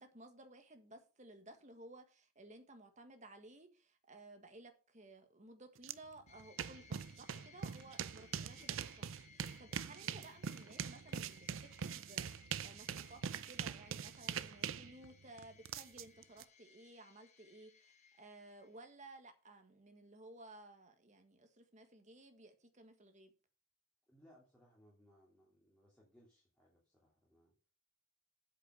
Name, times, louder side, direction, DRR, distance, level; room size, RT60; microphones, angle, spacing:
voice 1, 0.0-11.5 11.8-17.9 18.2-23.3, right 2 dB, 35° right, 1.6 m, -57 dB
sound 1, 5.8-5.9 6.3-16.4, right 7 dB, 70° right, 0.5 m, -43 dB
sound 2, 6.3-19.1, left 6 dB, 35° left, 1.2 m, -64 dB
voice 2, 8.4-8.8 10.0-10.4 24.1-27.7, equal, 5° left, 2.8 m, -67 dB
8.3 x 5.9 x 6.6 m
head